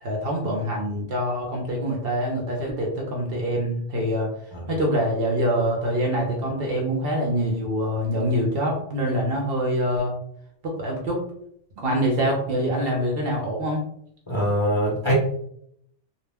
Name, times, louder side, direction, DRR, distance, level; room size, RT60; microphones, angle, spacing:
voice 1, 0.0-4.3 4.7-10.1 10.6-11.2 11.8-13.8, equal, 60° right, -1 dB, 0.8 m, -25 dB
voice 2, 14.3-15.1, equal, 30° left, -5 dB, 0.7 m, -22 dB
2.3 x 2.0 x 3.3 m, 0.70 s
omnidirectional pair, 1.2 m